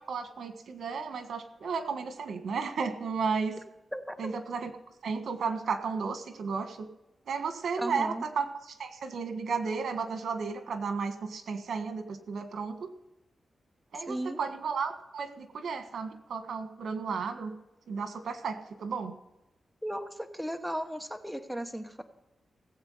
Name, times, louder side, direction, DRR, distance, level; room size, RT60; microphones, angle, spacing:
voice 1, 0.1-3.6 4.2-4.7 5.0-6.9 7.3-12.9 13.9-17.5 17.9-19.2, right 5 dB, 80° right, 7 dB, 1.5 m, -33 dB
voice 2, 3.9-4.3 7.8-8.2 13.9-14.4 19.8-22.0, equal, ahead, 7 dB, 1.0 m, -36 dB
17.5 x 8.1 x 5.6 m, 0.94 s
wide cardioid pair, 120°, 0 cm